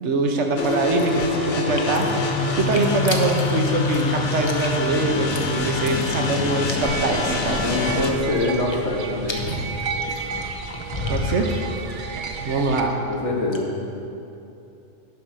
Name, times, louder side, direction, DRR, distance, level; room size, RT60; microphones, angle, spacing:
voice 1, 0.0-7.6 11.1-11.5 12.4-13.0, right 2 dB, 75° right, 2 dB, 1.2 m, -23 dB
sound 1, 0.6-8.1, left 3 dB, 80° left, 1.2 m, -25 dB
sound 2, 0.6-13.1 13.4-13.6, left 2 dB, 25° left, 0.7 m, -34 dB
sound 3, 6.8-12.8, right 5 dB, 50° right, 0.7 m, -32 dB
voice 2, 7.6-9.5 13.1-13.7, left 2 dB, 60° left, -1 dB, 1.5 m, -24 dB
10.0 x 6.2 x 5.4 m, 2.8 s
omnidirectional pair, 1.2 m